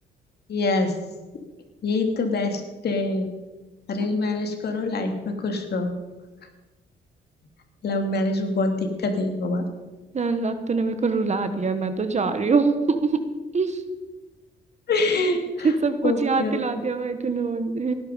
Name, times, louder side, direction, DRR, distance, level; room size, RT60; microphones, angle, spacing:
voice 1, 0.5-0.9 1.8-3.3 3.9-5.9 7.8-9.6 14.9-15.7 16.0-16.6, left 2 dB, 55° left, 4 dB, 2.8 m, -25 dB
voice 2, 10.1-13.2 13.5-13.8 15.6-17.9, right 4 dB, 35° right, 9 dB, 1.4 m, -24 dB
18.0 x 11.0 x 5.3 m, 1.2 s
cardioid pair, 100°, 20 cm